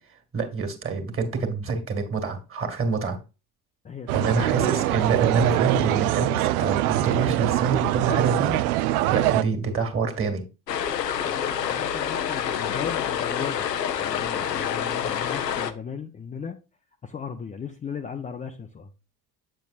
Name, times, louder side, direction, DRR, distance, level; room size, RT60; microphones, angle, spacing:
voice 1, 0.3-3.2 4.1-8.6 9.1-10.4, right 4 dB, 25° right, 1.9 m, -26 dB
voice 2, 3.8-5.3 11.2-13.7 13.9-16.6 17.0-18.9, left 6 dB, 15° left, 0.5 m, -37 dB
sound 1, 4.1-9.4, right 15 dB, 65° right, 0.6 m, -23 dB
sound 2, 10.7-15.7, left 9 dB, 90° left, 0.6 m, -27 dB
7.9 x 6.7 x 2.4 m
figure-of-eight pair, 60°, 48 cm